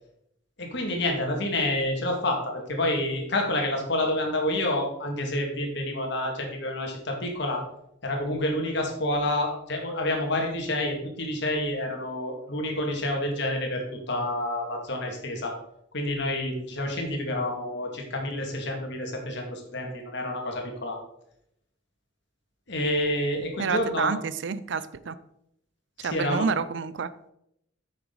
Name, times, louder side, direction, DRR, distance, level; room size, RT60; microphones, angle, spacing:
voice 1, 0.6-7.6 8.0-15.6 15.9-21.0 22.7-24.1 26.0-26.5, left 1 dB, 65° left, 2 dB, 2.1 m, -28 dB
voice 2, 23.6-25.2 26.0-27.1, right 5 dB, 70° right, 14 dB, 0.5 m, -29 dB
9.6 x 6.5 x 4.0 m, 0.76 s
head